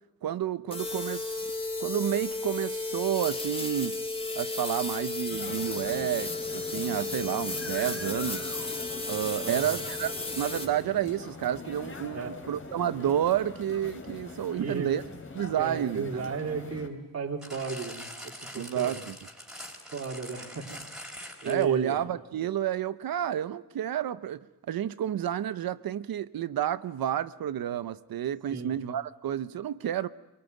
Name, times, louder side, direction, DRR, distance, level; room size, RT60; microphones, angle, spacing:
voice 1, 0.2-1.5 1.8-4.0 4.4-8.5 9.1-15.0 15.3-16.3 18.6-19.2 21.4-24.4 24.7-30.1, right 10 dB, 75° right, 0.9 m, -30 dB
sound 1, 0.7-10.7, left 3 dB, 15° left, 2.8 m, -34 dB
sound 2, 5.3-16.9, left 4 dB, 35° left, 3.3 m, -43 dB
voice 2, 9.4-9.7 12.1-12.3 14.6-14.9 15.6-18.0 18.5-18.9 19.9-20.7 21.0-22.0 28.5-28.7, right 5 dB, 45° right, 3.4 m, -34 dB
sound 3, 17.4-21.9 22.6-22.7, equal, ahead, 4.0 m, -43 dB
25.0 x 23.0 x 9.3 m
wide cardioid pair, 160°, 36 cm